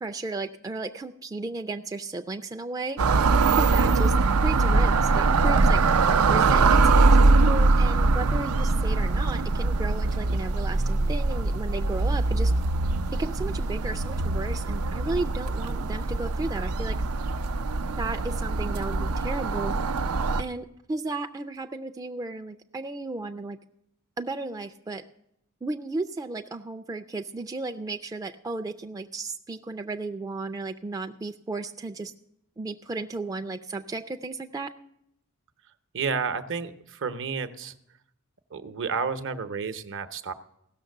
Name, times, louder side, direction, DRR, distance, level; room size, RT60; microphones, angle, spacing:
voice 1, 0.0-3.0 3.5-4.1 4.4-5.8 6.3-12.5 13.1-17.0 18.0-19.8 20.4-23.6 24.2-25.0 25.6-32.1 32.6-34.7, right 3 dB, 15° right, 6 dB, 0.4 m, -34 dB
sound 1, 3.0-20.4, right 3 dB, 85° right, 0.5 m, -22 dB
voice 2, 35.9-37.7 38.5-40.3, right 5 dB, 60° right, 10 dB, 0.8 m, -31 dB
16.0 x 6.5 x 6.5 m, 0.78 s
head